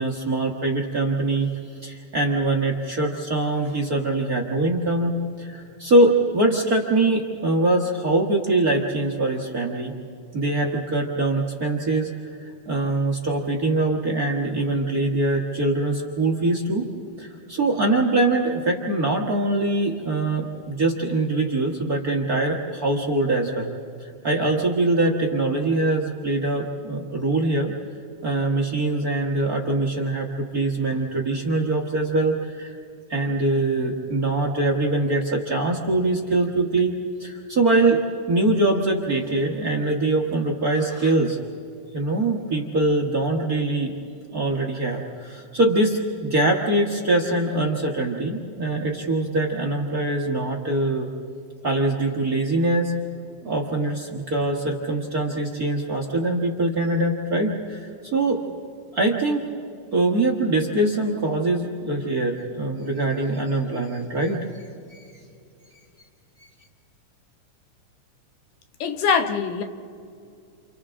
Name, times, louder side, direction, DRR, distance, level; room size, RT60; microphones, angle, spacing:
voice 1, 0.0-1.5 1.8-9.9 10.3-12.1 12.7-16.9 17.2-23.7 24.0-27.7 28.2-32.7 33.1-36.9 37.2-38.0 38.3-41.4 41.9-44.0 44.3-51.1 51.6-52.9 53.4-58.4 58.9-59.5 59.9-64.4 64.9-65.0, right 2 dB, 40° right, 1 dB, 1.5 m, -23 dB
voice 2, 68.8-69.6, left 6 dB, 85° left, 7 dB, 2.7 m, -22 dB
30.0 x 28.5 x 3.7 m, 2.4 s
omnidirectional pair, 3.6 m